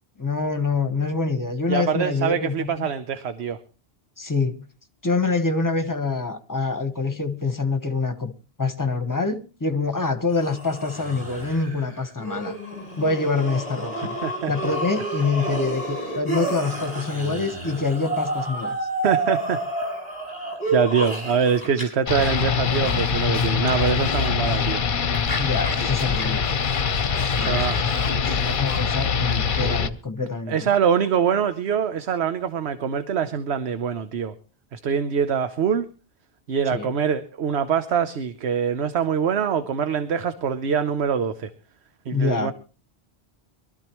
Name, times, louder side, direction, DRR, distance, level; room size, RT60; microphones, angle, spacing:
voice 1, 0.2-2.9 4.2-4.6 5.0-8.3 8.6-12.5 13.0-14.1 14.5-18.8 25.4-26.4 27.3-27.9 28.5-30.7 36.7-36.9 42.1-42.5, left 3 dB, 20° left, 1.1 m, -25 dB
voice 2, 1.7-3.6 14.2-14.5 19.0-19.6 20.7-24.8 27.5-27.8 30.5-34.3 34.7-35.9 36.5-41.5 42.1-42.5, right 7 dB, 75° right, 1.1 m, -24 dB
sound 1, 10.3-21.8 22.1-24.7 25.1-29.6, right 1 dB, 35° right, 6.6 m, -31 dB
sound 2, 22.1-29.9, left 6 dB, 55° left, 0.9 m, -23 dB
23.0 x 13.0 x 3.0 m
omnidirectional pair, 1.1 m